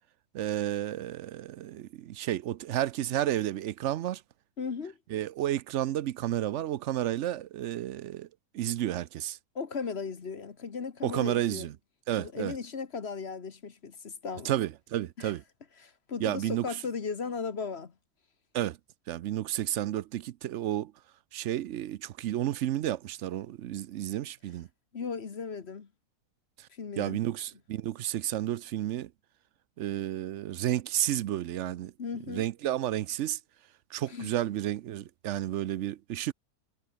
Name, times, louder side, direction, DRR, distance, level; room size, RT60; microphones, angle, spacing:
voice 1, 0.3-4.2 5.1-8.3 8.5-9.4 11.0-11.7 12.1-12.5 14.4-15.4 16.2-16.7 18.5-18.8 19.1-20.9 21.3-24.7 27.0-29.1 29.8-31.9 32.3-33.4 33.9-36.3, right 12 dB, 65° right, 0.8 m, -31 dB
voice 2, 4.6-5.0 9.5-11.7 12.2-14.6 15.2-15.3 15.8-17.9 24.9-25.9 26.7-27.2 32.0-32.4 34.1-34.3, left 5 dB, 45° left, 1.5 m, -36 dB
omnidirectional pair, 1.6 m